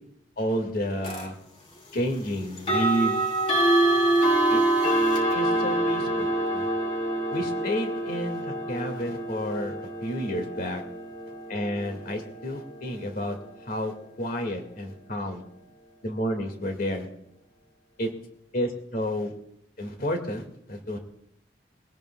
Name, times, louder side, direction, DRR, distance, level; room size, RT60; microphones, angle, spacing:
voice 1, 0.4-1.4 1.9-3.2 4.5-4.6 5.3-6.7 7.3-9.7 10.0-10.8 11.5-15.4 16.0-17.1 18.0-18.1 18.5-19.3 19.8-21.0, equal, 55° left, 4 dB, 2.0 m, -30 dB
sound 1, 1.0-1.3 2.6-13.4, right 1 dB, 30° left, 2.5 m, -26 dB
22.5 x 17.5 x 2.3 m, 0.77 s
head